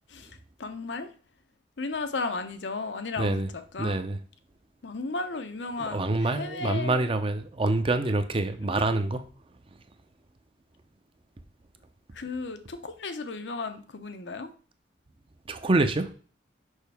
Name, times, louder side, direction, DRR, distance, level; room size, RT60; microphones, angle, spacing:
voice 1, 0.6-1.1 1.8-4.0 4.8-7.1 12.1-14.5, left 3 dB, 85° left, 0.7 m, -34 dB
voice 2, 3.8-4.2 5.8-9.2 15.5-16.1, right 2 dB, 30° right, 0.6 m, -26 dB
6.4 x 5.6 x 3.5 m
head